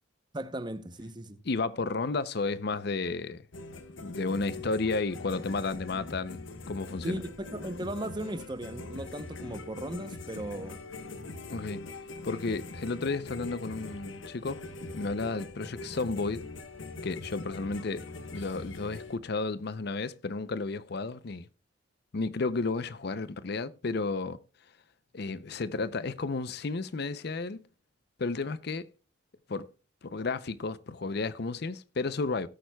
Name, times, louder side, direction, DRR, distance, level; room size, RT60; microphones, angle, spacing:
voice 1, 0.3-1.4 7.0-10.8, right 1 dB, 20° right, 0.7 m, -37 dB
voice 2, 1.4-3.4 4.0-7.2 11.5-11.8 12.2-14.7 14.9-16.4 17.0-18.0 18.3-21.5 22.1-24.4 25.1-27.7 28.2-28.9 29.5-29.7 30.0-32.5, left 3 dB, 50° left, 0.5 m, -32 dB
sound 1, 3.5-19.2, left 2 dB, 70° left, 1.1 m, -42 dB
17.5 x 8.9 x 2.3 m
head